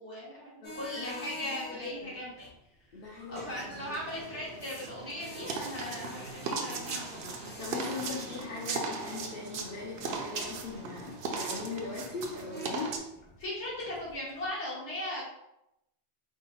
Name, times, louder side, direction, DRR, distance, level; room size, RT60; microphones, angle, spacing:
voice 1, 0.0-2.5 3.3-7.5 13.4-15.2, left 1 dB, 75° left, -6 dB, 1.8 m, -38 dB
voice 2, 0.6-2.2 2.9-4.0 7.3-13.0, left 4 dB, 60° left, -5 dB, 0.9 m, -40 dB
sound 1, 0.6-14.5, equal, 15° left, 0.4 m, -49 dB
sound 2, 3.3-13.0, right 4 dB, 65° right, 0.8 m, -38 dB
4.7 x 2.0 x 4.1 m, 0.86 s
omnidirectional pair, 1.2 m